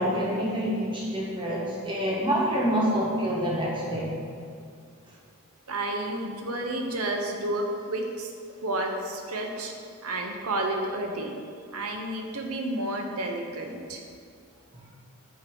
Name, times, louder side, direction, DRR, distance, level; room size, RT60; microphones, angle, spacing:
voice 1, 0.0-4.1, equal, 20° right, -6 dB, 1.6 m, -27 dB
voice 2, 5.7-8.3 8.6-11.4 11.7-14.0, right 1 dB, 75° right, 2 dB, 0.9 m, -31 dB
8.2 x 3.0 x 6.2 m, 2.2 s
head